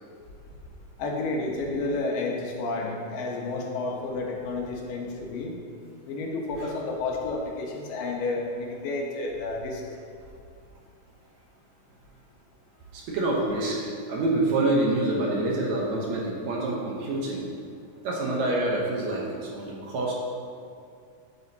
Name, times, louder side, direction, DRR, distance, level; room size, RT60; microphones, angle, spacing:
voice 1, 1.0-5.5 6.1-9.8, left 3 dB, 85° left, -1 dB, 2.7 m, -31 dB
voice 2, 12.9-17.5 18.0-20.1, right 2 dB, 65° right, -3 dB, 2.0 m, -27 dB
9.6 x 8.2 x 2.8 m, 2.3 s
omnidirectional pair, 3.8 m